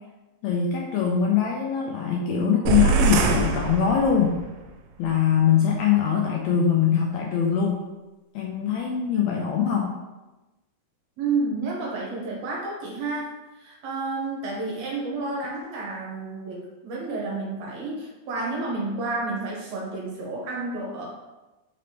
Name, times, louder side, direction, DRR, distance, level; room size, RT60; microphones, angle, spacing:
voice 1, 0.4-4.4 5.0-7.9 8.3-10.0, left 7 dB, 80° left, -1 dB, 1.6 m, -22 dB
sound 1, 2.7-4.5, right 4 dB, 90° right, 2.0 m, -23 dB
voice 2, 11.2-13.3 13.6-21.1, right 3 dB, 70° right, -3 dB, 2.0 m, -30 dB
5.0 x 3.3 x 2.8 m, 1.1 s
omnidirectional pair, 3.5 m